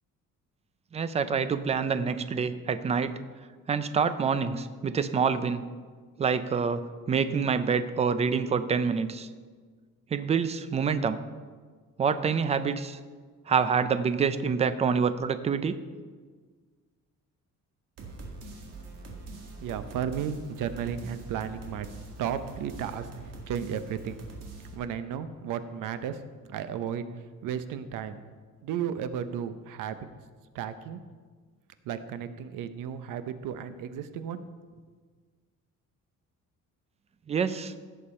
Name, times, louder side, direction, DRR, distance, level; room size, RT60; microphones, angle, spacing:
voice 1, 0.9-3.1 3.7-5.6 6.2-6.8 7.1-9.3 10.1-11.2 12.0-13.0 13.5-15.7 37.3-37.7, right 6 dB, 20° right, 12 dB, 0.4 m, -26 dB
sound 1, 18.0-24.8, right 3 dB, 50° right, 1.8 m, -43 dB
voice 2, 19.6-21.9 22.2-24.2 24.7-26.2 26.5-28.2 28.6-30.1 30.5-31.0 31.8-34.4, right 8 dB, 80° right, 11 dB, 0.8 m, -34 dB
16.5 x 6.7 x 4.3 m, 1.5 s
cardioid pair, 175°, 31 cm